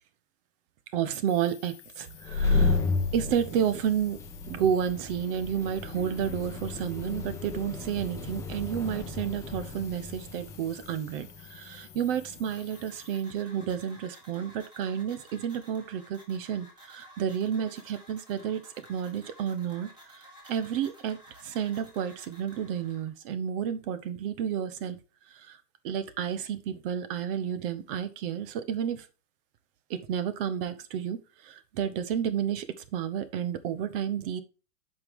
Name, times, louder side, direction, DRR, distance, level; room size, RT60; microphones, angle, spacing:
voice 1, 0.9-2.8 3.1-4.2 4.5-19.9 20.2-25.0 25.3-25.6 25.8-29.1 29.9-34.4, right 8 dB, 35° right, 13 dB, 0.9 m, -31 dB
sound 1, 1.3-13.2, left 11 dB, 25° left, 1.2 m, -53 dB
sound 2, 2.1-12.6, left 3 dB, 5° left, 1.0 m, -33 dB
sound 3, 12.5-23.1, equal, 10° right, 2.0 m, -54 dB
7.9 x 5.5 x 3.6 m, 0.32 s
hypercardioid pair, 140°, 48 cm